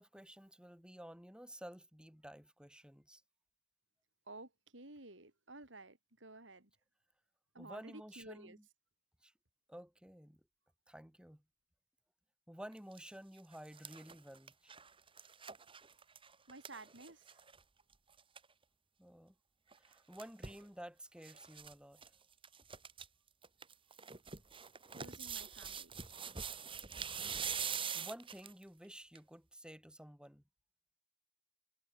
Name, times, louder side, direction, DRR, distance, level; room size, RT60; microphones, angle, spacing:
voice 1, 0.0-3.2 7.6-8.6 9.2-9.3 9.7-10.4 10.9-11.4 12.5-14.7 19.0-19.3 19.8-22.0 27.6-30.4, equal, 5° right, 4.6 m, -52 dB
voice 2, 4.3-6.7 7.5-8.6 16.5-17.4 24.9-25.9, right 2 dB, 80° right, 5.9 m, -53 dB
sound 1, 12.7-13.0 13.4-17.6 17.9-18.0 18.2-18.5 19.7-20.6 21.2-21.7 22.0-22.1 22.4-23.1 23.4-28.6 29.2-29.3, right 7 dB, 30° right, 2.2 m, -44 dB
head